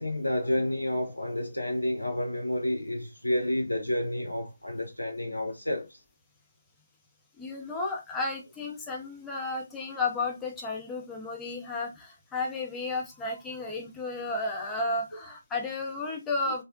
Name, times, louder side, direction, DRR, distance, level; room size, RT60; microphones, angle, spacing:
voice 1, 0.0-6.0, left 1 dB, 80° left, 0.4 m, -30 dB
voice 2, 7.4-16.6, left 3 dB, 10° left, 0.5 m, -33 dB
2.4 x 2.0 x 2.5 m
figure-of-eight pair, 150°, 0 cm